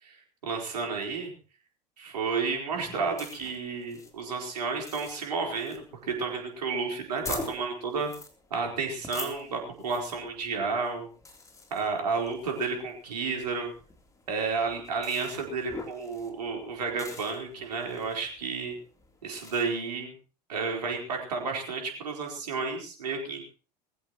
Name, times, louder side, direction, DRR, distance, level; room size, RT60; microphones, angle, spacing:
voice 1, 0.0-1.3 2.0-8.1 8.5-11.1 11.7-13.7 14.3-18.8 19.2-20.1 20.5-23.4, right 4 dB, 70° right, 1 dB, 4.5 m, -31 dB
sound 1, 2.7-19.6, left 3 dB, 15° left, 3.6 m, -46 dB
21.0 x 15.0 x 3.1 m, 0.36 s
figure-of-eight pair, 75°, 21 cm